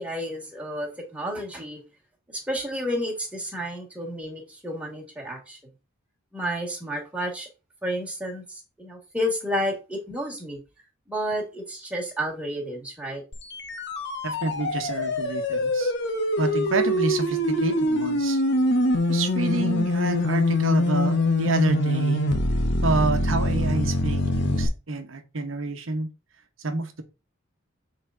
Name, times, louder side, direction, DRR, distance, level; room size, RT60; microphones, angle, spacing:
voice 1, 0.0-1.8 2.3-5.6 6.3-7.5 7.8-10.6 11.1-13.2, equal, 5° right, 1.9 m, -31 dB
sound 1, 13.3-24.7, left 1 dB, 60° left, 1.1 m, -24 dB
voice 2, 14.2-15.9 16.4-18.4 19.1-22.3 22.8-26.1 26.6-27.0, right 2 dB, 90° right, 1.1 m, -28 dB
6.9 x 3.9 x 3.8 m
head